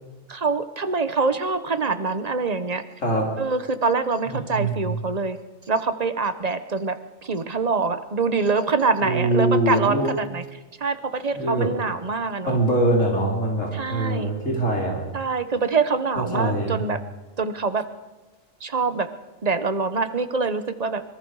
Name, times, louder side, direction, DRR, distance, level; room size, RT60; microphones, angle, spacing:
voice 1, 0.3-2.8 3.4-5.4 5.7-10.4 10.8-12.6 13.7-14.3 15.1-17.0 17.4-17.8 18.6-19.1 19.4-21.0, right 4 dB, 35° right, 11 dB, 1.0 m, -25 dB
voice 2, 3.0-3.3 4.3-4.9 9.0-10.1 11.3-11.7 12.5-15.0 16.2-16.8, right 1 dB, 85° left, -1 dB, 3.7 m, -23 dB
25.5 x 22.5 x 4.8 m, 1.2 s
omnidirectional pair, 1.3 m